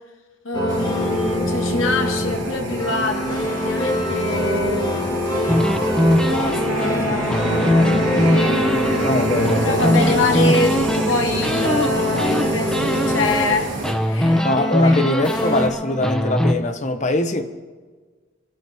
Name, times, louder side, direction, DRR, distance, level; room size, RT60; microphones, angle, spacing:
voice 1, 0.4-5.1 6.1-8.6 9.6-14.5 14.8-15.4, left 2 dB, 80° left, 1.9 m, -25 dB
sound 1, 0.5-15.7, equal, 20° left, 2.1 m, -24 dB
sound 2, 0.7-13.9, right 2 dB, 70° right, 3.6 m, -29 dB
sound 3, 5.5-11.1 11.4-13.5 13.8-16.5, left 1 dB, 5° left, 0.7 m, -21 dB
voice 2, 9.0-10.0 14.4-17.5, left 2 dB, 35° left, 1.0 m, -22 dB
25.5 x 12.5 x 3.6 m
head